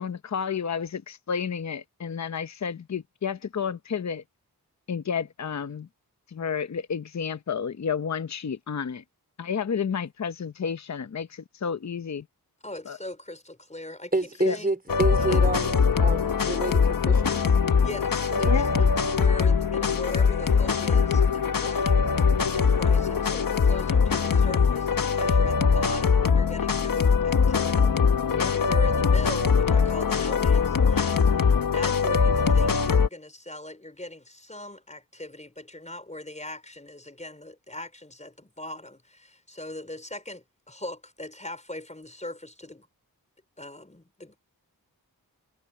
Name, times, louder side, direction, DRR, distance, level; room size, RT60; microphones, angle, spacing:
voice 1, 0.0-4.2 4.9-5.9 6.3-9.0 9.4-12.2 12.9-13.0 14.4-14.6 18.4-18.8 28.3-28.5, left 6 dB, 50° left, 0.8 m, -31 dB
voice 2, 12.6-14.7 15.1-15.4 17.8-22.1 22.5-28.0 28.5-42.9 43.6-44.4, left 1 dB, 20° left, 4.7 m, -40 dB
voice 3, 14.1-17.5 18.5-18.6 28.3-28.6, right 2 dB, 25° right, 4.4 m, -29 dB
sound 1, 14.9-33.1, left 5 dB, 65° left, 1.4 m, -22 dB
wide cardioid pair, 110°, 37 cm